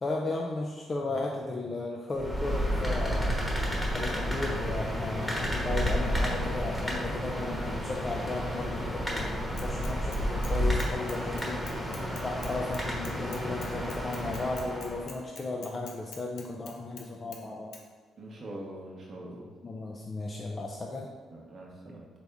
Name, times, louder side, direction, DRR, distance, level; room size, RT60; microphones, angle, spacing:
voice 1, 0.0-3.4 3.9-12.0 12.2-17.7 19.6-21.1, left 2 dB, 30° left, 0 dB, 0.4 m, -35 dB
sound 1, 2.2-15.1, equal, ahead, 1.1 m, -31 dB
Bicycle / Mechanisms, 9.6-10.5 10.8-17.1 17.3-17.4 17.7-17.8, left 5 dB, 80° left, 0.6 m, -46 dB
voice 2, 18.2-19.5 21.3-22.1, right 1 dB, 45° right, -3 dB, 0.8 m, -43 dB
4.1 x 3.4 x 3.4 m, 1.4 s
cardioid pair, 90°, 0 cm